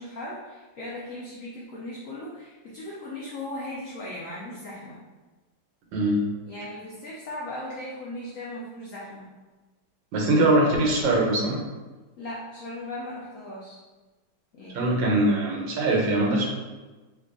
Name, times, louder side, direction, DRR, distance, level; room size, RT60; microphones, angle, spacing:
voice 1, 0.0-5.0 6.5-9.3 12.2-13.8 14.5-15.2, left 1 dB, 80° left, -5 dB, 0.7 m, -38 dB
voice 2, 5.9-6.3 10.1-11.6 14.7-16.5, right 1 dB, 85° right, -1 dB, 1.4 m, -22 dB
3.1 x 2.3 x 3.7 m, 1.2 s
omnidirectional pair, 2.0 m